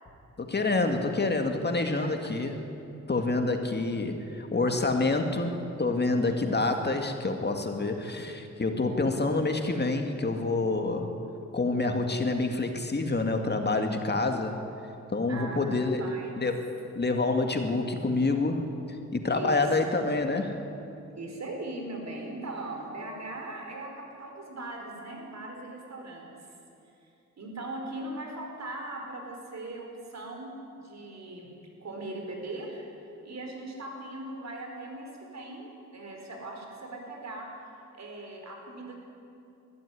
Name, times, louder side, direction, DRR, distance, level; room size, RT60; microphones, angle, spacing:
voice 1, 0.4-2.6 3.1-11.1 11.5-14.6 15.1-16.0 16.4-16.6 17.0-18.6 19.1-20.6, left 3 dB, 35° left, 4 dB, 2.1 m, -27 dB
voice 2, 15.3-15.6 15.9-16.3 19.3-19.6 21.2-26.3 27.4-31.5 31.8-32.8 33.2-37.5 37.9-38.9, right 2 dB, 65° right, 1 dB, 4.7 m, -39 dB
20.5 x 13.5 x 9.7 m, 2.7 s
cardioid pair, 85°, 29 cm